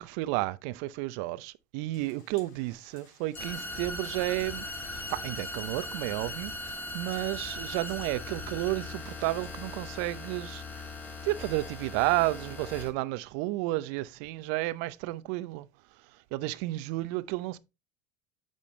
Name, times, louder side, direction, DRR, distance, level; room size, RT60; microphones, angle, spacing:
voice 1, 0.0-4.6 4.9-10.9 11.2-15.7 16.3-17.6, right 18 dB, 65° right, 0.6 m, -32 dB
sound 1, 1.9-9.5, left 5 dB, 70° left, 3.4 m, -60 dB
sound 2, 3.3-12.9, left 2 dB, 20° left, 2.6 m, -39 dB
8.6 x 5.3 x 3.2 m
hypercardioid pair, 90°, 9 cm